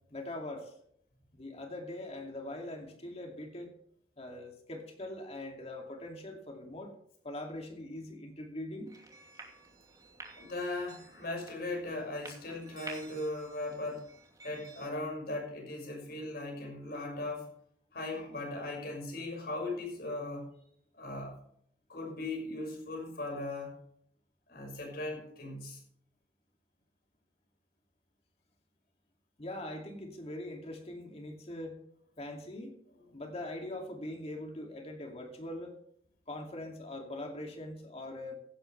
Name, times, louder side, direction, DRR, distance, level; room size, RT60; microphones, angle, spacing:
voice 1, 0.1-0.7 1.3-3.7 4.2-6.9 7.2-8.9 29.4-31.8 32.2-32.8 33.1-35.7 36.3-38.3, left 1 dB, 35° left, 2 dB, 2.5 m, -42 dB
sound 1, 8.9-14.9, right 3 dB, 20° right, 2.7 m, -51 dB
voice 2, 10.4-14.1 14.4-17.5 17.9-20.5 20.9-21.4 21.9-23.8 24.5-25.8, left 2 dB, 60° left, 1 dB, 5.9 m, -38 dB
16.5 x 11.5 x 3.3 m, 0.68 s
head